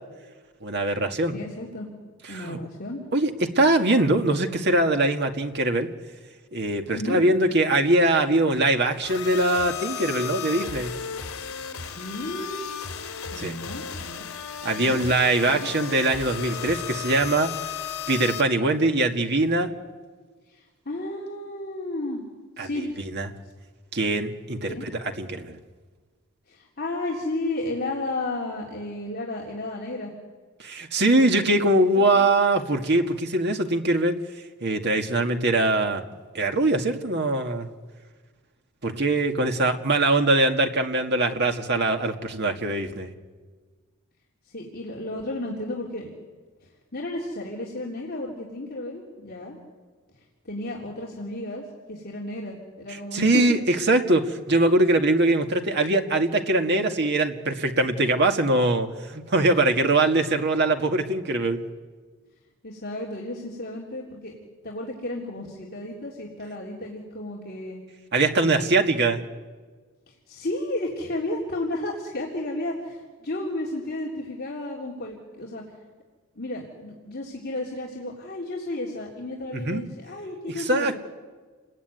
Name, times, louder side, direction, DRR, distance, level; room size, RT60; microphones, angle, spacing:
voice 1, 0.6-1.3 2.3-2.6 3.1-5.9 6.5-10.9 13.4-13.6 14.6-17.5 18.1-19.7 22.6-23.3 23.9-25.6 30.6-34.2 34.6-36.0 36.3-37.7 38.8-43.1 53.1-61.6 68.1-69.2 79.5-79.8 80.6-81.0, right 2 dB, 50° right, 5 dB, 1.9 m, -22 dB
voice 2, 1.3-1.9 2.3-3.0 6.9-7.2 11.9-12.8 13.3-14.3 14.8-15.0 15.5-15.7 20.5-22.2 22.6-22.9 24.7-24.8 26.5-30.1 31.9-32.3 44.5-46.1 46.9-49.6 50.5-53.4 62.6-64.3 64.6-67.8 68.4-68.7 70.1-75.6 76.4-80.9, left 1 dB, 45° left, -4 dB, 3.6 m, -33 dB
sound 1, 9.0-18.4, left 7 dB, 75° left, 3.4 m, -35 dB
29.5 x 21.0 x 9.4 m, 1.5 s
head